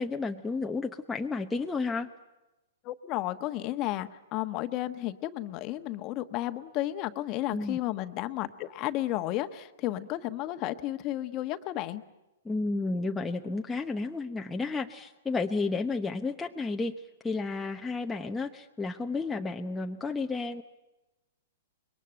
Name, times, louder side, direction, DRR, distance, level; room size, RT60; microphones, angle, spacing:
voice 1, 0.0-2.1 7.5-7.8 12.4-20.6, left 3 dB, 10° left, 2 dB, 0.9 m, -32 dB
voice 2, 2.8-12.0, left 15 dB, 30° left, 9 dB, 1.3 m, -33 dB
26.0 x 22.5 x 8.9 m, 0.99 s
hypercardioid pair, 150°, 0 cm